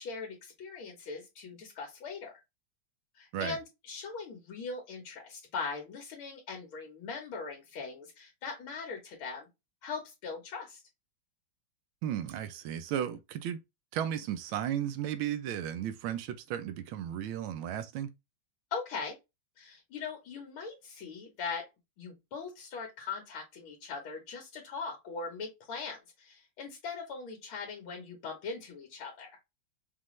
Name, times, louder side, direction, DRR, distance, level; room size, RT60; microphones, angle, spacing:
voice 1, 0.0-2.3 3.1-9.5 9.8-10.8 18.7-19.2 19.6-21.7 22.0-29.4, left 5 dB, 90° left, 1.9 m, -40 dB
voice 2, 12.0-13.6 13.9-18.1, right 10 dB, 80° right, 1.5 m, -34 dB
5.5 x 2.5 x 3.1 m
omnidirectional pair, 2.2 m